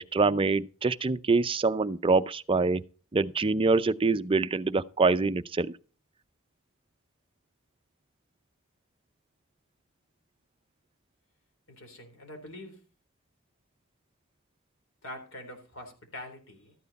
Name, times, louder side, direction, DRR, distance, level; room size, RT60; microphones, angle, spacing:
voice 1, 0.0-2.8 3.1-5.7, right 3 dB, 25° right, 0.5 m, -25 dB
voice 2, 11.7-12.8 15.0-16.7, left 1 dB, 65° left, 3.7 m, -44 dB
13.0 x 9.2 x 4.1 m
head